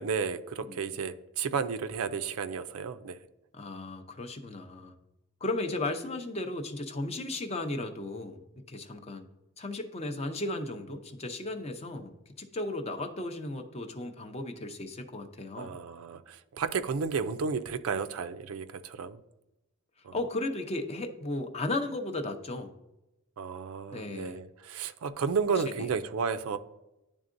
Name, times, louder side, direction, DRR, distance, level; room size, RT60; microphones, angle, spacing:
voice 1, 0.0-3.2 15.6-19.2 20.0-20.1 23.4-26.6, right 5 dB, 90° right, 11 dB, 0.4 m, -32 dB
voice 2, 0.6-1.1 3.5-4.9 5.4-9.3 9.6-15.7 20.1-22.7 23.9-24.4 25.6-25.9, left 2 dB, 30° left, 6 dB, 0.6 m, -35 dB
10.5 x 3.6 x 2.5 m, 0.95 s
head